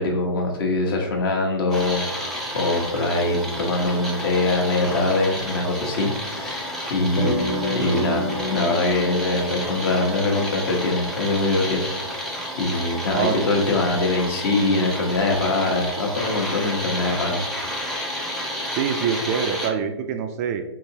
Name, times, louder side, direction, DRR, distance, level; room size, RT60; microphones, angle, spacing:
voice 1, 0.0-7.4 7.7-11.8 12.1-12.2 12.6-17.5, left 2 dB, 55° left, 1 dB, 1.1 m, -23 dB
sound 1, 1.7-19.7, equal, ahead, 0.6 m, -31 dB
sound 2, 7.2-11.8, left 1 dB, 75° left, 0.8 m, -29 dB
voice 2, 18.7-20.6, right 7 dB, 35° right, 7 dB, 0.3 m, -25 dB
4.8 x 2.8 x 2.7 m, 0.91 s
hypercardioid pair, 125°, 14 cm